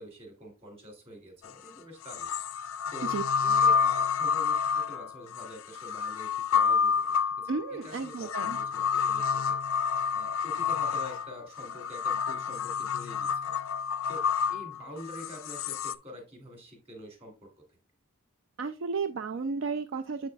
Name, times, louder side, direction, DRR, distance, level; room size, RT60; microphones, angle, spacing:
voice 1, 0.0-2.3 2.9-3.1 3.4-9.6 10.1-13.6 14.1-17.8, equal, 30° right, 2 dB, 2.5 m, -46 dB
steel piping, 1.4-1.5 2.1-15.9, left 6 dB, 75° left, 0.4 m, -29 dB
voice 2, 7.5-8.6 18.6-20.3, right 4 dB, 60° right, 9 dB, 0.4 m, -33 dB
7.4 x 6.4 x 2.3 m, 0.31 s
head